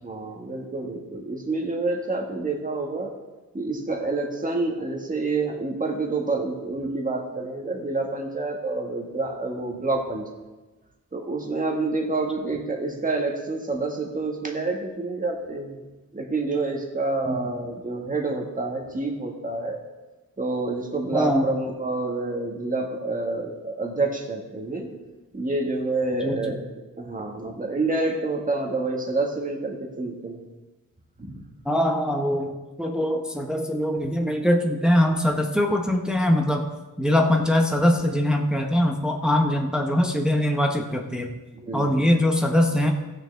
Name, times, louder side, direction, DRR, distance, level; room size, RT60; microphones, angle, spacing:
voice 1, 0.0-3.1 3.5-10.2 11.1-15.8 16.1-19.8 20.4-24.9 25.3-26.6 27.0-30.4 31.2-31.4 41.5-42.1, right 3 dB, 25° right, 1 dB, 1.6 m, -28 dB
voice 2, 21.1-21.5 26.1-26.6 31.6-36.6 37.0-41.3 41.7-42.9, left 1 dB, ahead, 2 dB, 0.7 m, -22 dB
18.0 x 6.7 x 3.4 m, 1.2 s
wide cardioid pair, 155°, 33 cm